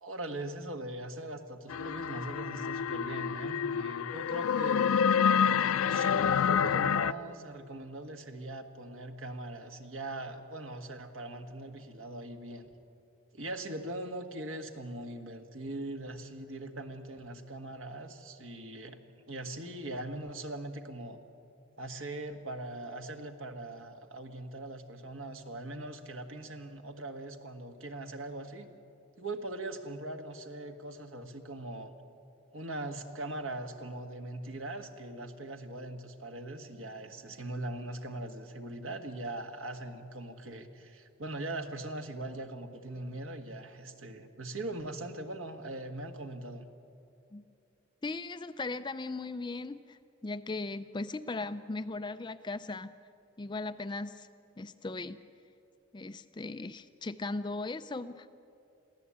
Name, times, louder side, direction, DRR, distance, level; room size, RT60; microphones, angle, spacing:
voice 1, 0.0-4.9 5.8-12.7 13.3-19.0 19.3-21.2 21.8-28.7 29.2-32.0 32.5-46.7, right 2 dB, 75° right, 6 dB, 1.5 m, -41 dB
sound 1, 1.7-7.1, left 7 dB, 90° left, 0.4 m, -28 dB
voice 2, 48.0-52.9 53.4-54.3 54.6-55.2 55.9-58.3, left 3 dB, 20° left, 11 dB, 0.4 m, -38 dB
23.0 x 15.5 x 8.6 m, 2.7 s
head